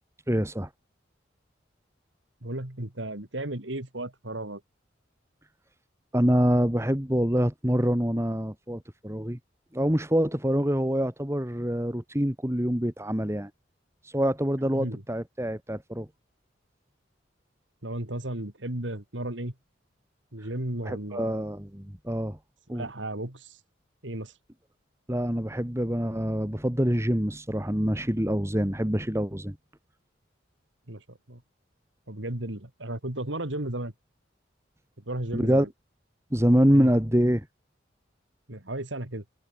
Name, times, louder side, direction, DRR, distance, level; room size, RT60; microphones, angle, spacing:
voice 1, 0.3-0.7 6.1-9.4 9.7-13.5 14.0-16.1 20.8-22.4 22.7-22.9 25.1-29.6 35.3-35.7 36.3-37.5, equal, 15° right, 2.3 m, -25 dB
voice 2, 2.4-4.6 14.7-15.0 17.8-19.5 20.3-21.5 22.7-23.6 24.0-24.3 30.9-31.4 32.1-33.9 35.1-35.7 36.7-36.9 38.5-39.2, right 1 dB, 80° right, 3.1 m, -34 dB
head